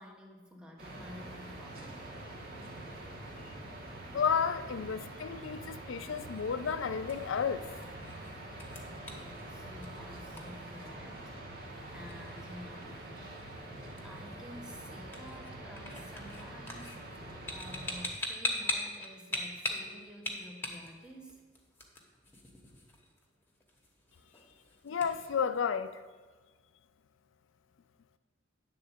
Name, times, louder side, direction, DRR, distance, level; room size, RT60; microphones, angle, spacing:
voice 1, 0.0-2.1 9.0-13.2 14.0-17.2 17.5-21.4, equal, 5° right, 1.0 m, -51 dB
sound 1, 0.8-18.1, right 1 dB, 55° right, 1.3 m, -45 dB
voice 2, 4.1-7.6 24.8-25.9, left 6 dB, 80° left, 0.4 m, -32 dB
sound 2, 6.0-25.4, left 2 dB, 10° left, 1.2 m, -43 dB
9.5 x 3.9 x 6.9 m
head